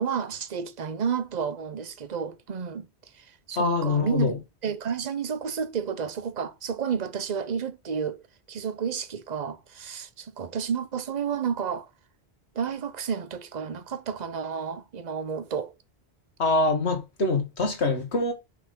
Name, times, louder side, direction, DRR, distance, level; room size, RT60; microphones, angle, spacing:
voice 1, 0.0-2.9 3.2-4.3 4.6-8.2 8.5-11.9 12.5-15.8, right 7 dB, 45° right, 0.9 m, -31 dB
voice 2, 3.6-4.3 16.4-18.3, left 3 dB, 80° left, 1.9 m, -24 dB
6.1 x 5.0 x 5.1 m
omnidirectional pair, 1.1 m